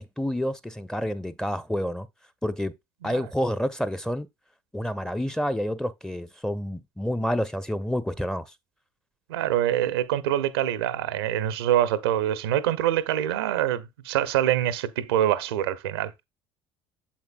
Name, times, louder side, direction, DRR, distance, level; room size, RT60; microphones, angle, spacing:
voice 1, 0.0-2.1 2.4-2.7 3.0-4.3 4.7-8.5, equal, 5° left, 0.9 m, -28 dB
voice 2, 9.3-16.2, right 11 dB, 75° right, 0.8 m, -25 dB
7.8 x 7.2 x 2.4 m
figure-of-eight pair, 55°, 13 cm